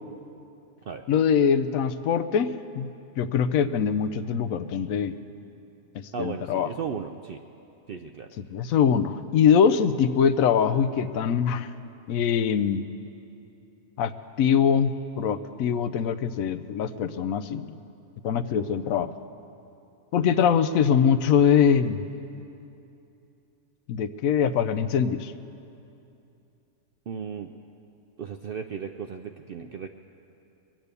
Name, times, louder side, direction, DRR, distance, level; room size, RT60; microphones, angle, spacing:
voice 1, 1.1-2.9 3.2-5.1 5.9-6.7 8.4-11.7 12.1-12.9 14.0-14.1 14.4-17.7 18.2-19.1 20.1-22.1 23.9-25.3, left 7 dB, 75° left, 12 dB, 1.0 m, -23 dB
voice 2, 6.1-7.4 7.9-8.3 20.2-20.4 27.1-27.5 28.2-29.9, right 6 dB, 65° right, 6 dB, 0.5 m, -35 dB
22.5 x 8.9 x 6.8 m, 2.8 s
omnidirectional pair, 1.5 m